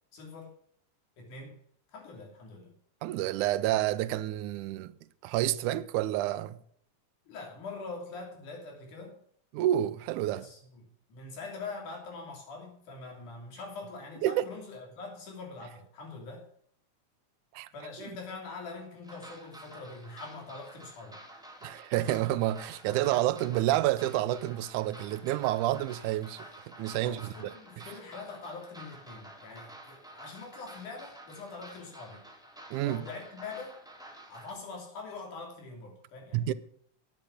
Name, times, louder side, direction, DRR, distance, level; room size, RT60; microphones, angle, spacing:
voice 1, 0.1-0.5 1.2-1.6 1.9-2.7 7.3-9.2 10.3-10.8 11.1-16.5 17.7-21.2 27.0-32.2 32.8-33.8 34.3-36.5, left 3 dB, 80° left, 4.5 m, -43 dB
voice 2, 3.0-4.9 5.2-6.6 9.5-10.5 14.2-14.4 17.5-17.7 21.6-27.5 32.7-33.0 36.3-36.5, right 14 dB, 85° right, 2.1 m, -29 dB
sound 1, 19.0-34.5, right 1 dB, ahead, 1.1 m, -50 dB
10.5 x 8.7 x 6.4 m
omnidirectional pair, 3.5 m